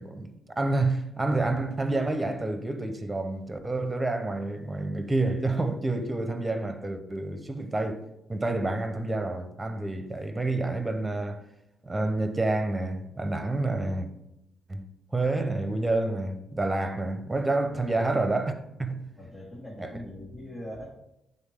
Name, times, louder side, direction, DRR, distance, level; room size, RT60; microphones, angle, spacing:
voice 1, 0.0-8.0 8.3-11.4 11.8-14.1 14.7-19.1 19.8-19.9, right 2 dB, 15° right, 0.7 m, -29 dB
voice 2, 19.2-20.9, left 1 dB, 10° left, 1.7 m, -41 dB
9.5 x 3.8 x 3.6 m
cardioid pair, 105°, 0 cm